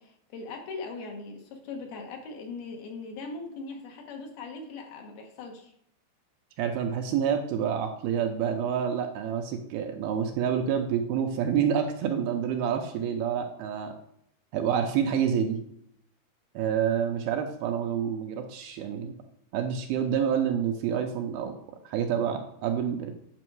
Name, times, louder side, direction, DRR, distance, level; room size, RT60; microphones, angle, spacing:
voice 1, 0.0-5.7, left 3 dB, 70° left, 2 dB, 3.0 m, -40 dB
voice 2, 6.6-14.0 14.5-15.6 16.6-19.1 19.5-21.5 21.9-23.1, right 8 dB, 80° right, 4 dB, 2.4 m, -28 dB
8.8 x 6.1 x 4.7 m, 0.70 s
omnidirectional pair, 4.8 m